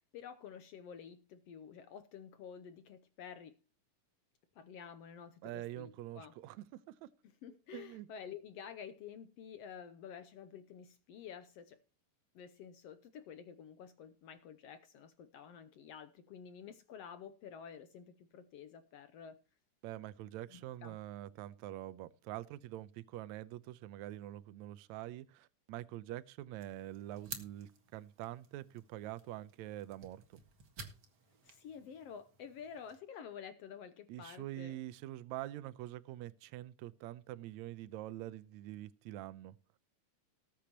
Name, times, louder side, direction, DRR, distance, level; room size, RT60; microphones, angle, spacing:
voice 1, 0.0-3.5 4.5-6.3 7.2-11.8 12.3-19.4 20.5-21.0 31.4-34.8, left 7 dB, 70° left, 1.6 m, -50 dB
voice 2, 5.4-7.1 7.5-8.1 19.8-30.4 34.1-39.6, right 14 dB, 75° right, 1.9 m, -45 dB
sound 1, 26.6-33.0, right 4 dB, 40° right, 1.9 m, -53 dB
19.0 x 8.4 x 2.9 m
omnidirectional pair, 3.5 m